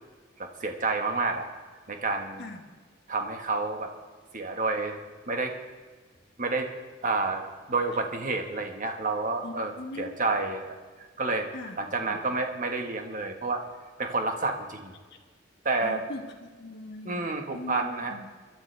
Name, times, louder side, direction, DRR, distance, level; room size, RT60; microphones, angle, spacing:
voice 1, 0.4-1.5 1.9-2.4 3.1-3.9 4.3-5.0 5.3-5.5 6.4-6.7 7.0-7.4 7.7-9.7 10.0-10.8 11.2-11.5 11.8-13.6 14.0-14.9 15.6-16.0 17.0-18.1, right 3 dB, 45° right, 4 dB, 1.5 m, -29 dB
voice 2, 9.4-10.2 11.5-12.2 15.1-15.2 15.8-17.2 17.5-18.3, left 2 dB, 60° left, 1 dB, 1.8 m, -41 dB
23.0 x 12.0 x 3.4 m, 1.4 s
head